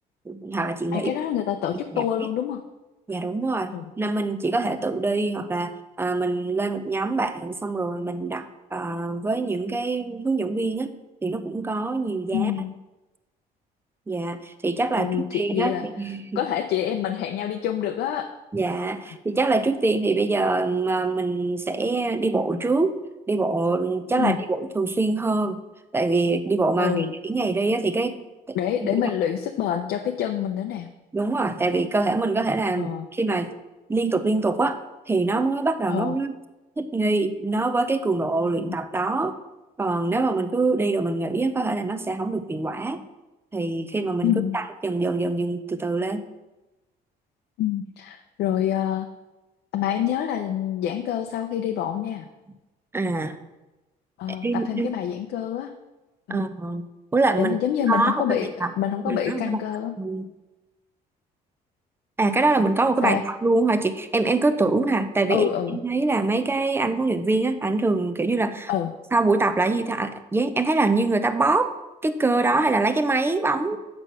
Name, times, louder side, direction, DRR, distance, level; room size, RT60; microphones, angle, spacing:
voice 1, 0.3-1.1 1.9-2.0 3.1-10.9 11.2-12.5 14.1-16.4 18.5-23.0 23.3-25.6 25.9-28.2 28.5-28.9 31.1-33.5 33.9-34.8 35.1-36.4 36.8-39.4 39.8-43.1 43.5-46.3 52.9-53.4 54.3-54.9 56.3-56.9 57.1-57.6 57.9-58.7 59.1-59.6 60.0-60.3 62.2-68.7 69.1-71.7 72.0-73.8, right 3 dB, 15° right, 10 dB, 0.6 m, -24 dB
voice 2, 0.9-2.6 3.7-3.9 12.3-12.7 15.0-15.9 16.4-18.3 24.2-24.4 26.8-27.1 28.5-30.9 32.8-33.1 35.9-36.1 44.2-44.6 47.6-49.1 49.7-52.3 54.2-55.7 56.3-56.4 57.4-59.9 63.0-63.2 65.3-65.8 68.7-68.9, left 10 dB, 75° left, 4 dB, 0.6 m, -26 dB
7.6 x 6.0 x 5.6 m, 1.1 s
cardioid pair, 110°, 17 cm